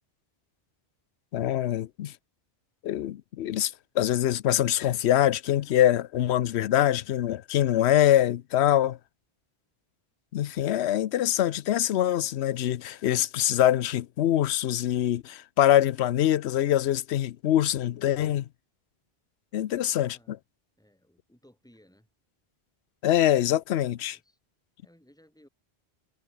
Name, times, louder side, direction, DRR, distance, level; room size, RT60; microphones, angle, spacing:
voice 1, 1.3-2.1 2.8-9.0 10.3-18.4 19.5-20.2 23.0-24.2, left 12 dB, 85° left, 0.9 m, -24 dB
voice 2, 19.5-20.4 20.8-22.1 24.1-24.4 24.8-25.5, equal, 5° left, 4.9 m, -60 dB
omnidirectional pair, 1.1 m